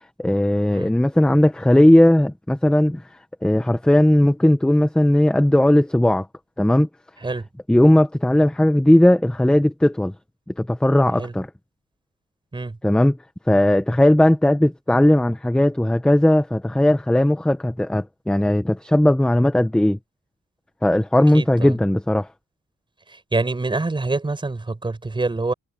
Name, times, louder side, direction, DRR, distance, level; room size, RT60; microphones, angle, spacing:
voice 1, 0.2-3.0 3.4-6.3 6.6-6.9 7.7-10.1 10.6-11.5 12.8-13.2 13.5-20.0 20.8-22.3, left 1 dB, 5° left, 0.8 m, -17 dB
voice 2, 21.3-21.8 23.1-25.5, right 3 dB, 15° right, 5.0 m, -26 dB
wide cardioid pair, 175°, 30 cm